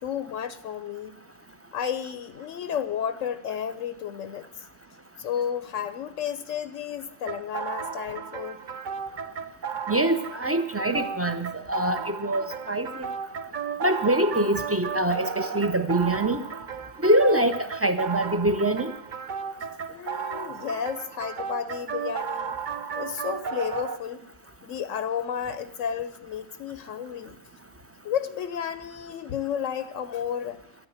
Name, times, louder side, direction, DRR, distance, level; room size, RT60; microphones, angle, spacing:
voice 1, 0.0-1.2 1.7-4.5 5.2-8.6 19.9-22.6 22.9-24.2 24.6-27.4 28.0-30.6, left 8 dB, 80° left, 12 dB, 1.0 m, -32 dB
sound 1, 7.3-24.0, right 6 dB, 45° right, 0.8 m, -34 dB
voice 2, 9.9-13.1 13.8-16.4 17.0-18.9, right 1 dB, 15° right, 9 dB, 0.7 m, -24 dB
13.0 x 9.1 x 9.5 m, 0.89 s
omnidirectional pair, 1.3 m